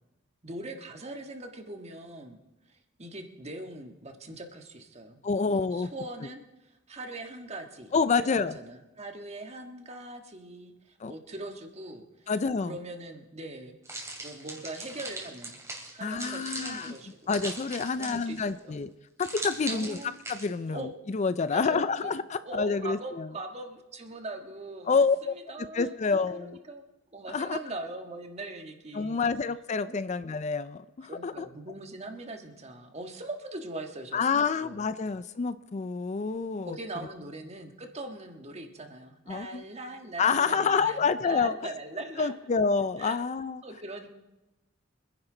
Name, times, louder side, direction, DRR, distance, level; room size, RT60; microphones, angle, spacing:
voice 1, 0.4-2.4 2.7-12.3 12.7-13.8 14.2-15.6 15.9-17.3 18.0-18.9 19.7-20.2 20.7-20.9 21.5-22.1 22.4-26.8 27.1-29.2 29.8-30.0 31.0-34.9 36.6-42.3 43.0-43.2 43.6-44.1, right 2 dB, 35° right, 4 dB, 1.5 m, -41 dB
voice 2, 5.2-5.9 7.9-8.6 11.0-11.1 12.3-12.8 16.0-16.9 17.3-18.9 19.2-23.3 24.9-25.3 25.7-26.6 27.3-27.6 28.9-31.5 34.1-36.8 39.3-39.6 40.2-41.5 42.2-43.6, left 5 dB, 35° left, 14 dB, 0.4 m, -28 dB
sound 1, 13.9-18.5 19.2-20.5, right 2 dB, 15° right, 3.0 m, -39 dB
25.0 x 10.5 x 3.9 m, 1.0 s
head